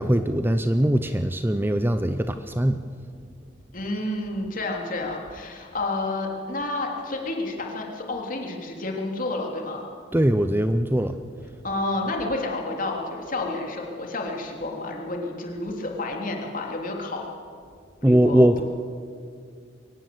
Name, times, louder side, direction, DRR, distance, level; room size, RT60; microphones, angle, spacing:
voice 1, 0.0-2.8 10.1-11.2 18.0-18.6, right 1 dB, 10° right, 9 dB, 0.6 m, -21 dB
voice 2, 3.7-9.8 11.6-17.2 18.0-18.6, left 2 dB, 45° left, 0 dB, 3.4 m, -30 dB
23.0 x 19.0 x 7.9 m, 2.2 s
head